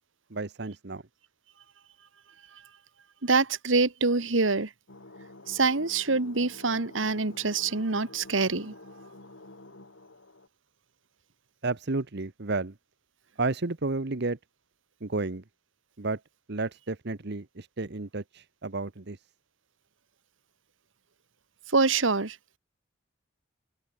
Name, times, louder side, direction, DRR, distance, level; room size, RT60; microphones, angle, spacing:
voice 1, 0.3-1.0 11.6-12.7 13.4-14.4 15.0-15.4 16.0-16.2 16.5-19.2, right 3 dB, 60° right, 1.2 m, -32 dB
voice 2, 3.2-4.7 5.5-8.7 21.7-22.4, right 3 dB, 80° right, 1.7 m, -25 dB
sound 1, 4.9-10.5, left 2 dB, 75° left, 3.2 m, -49 dB
head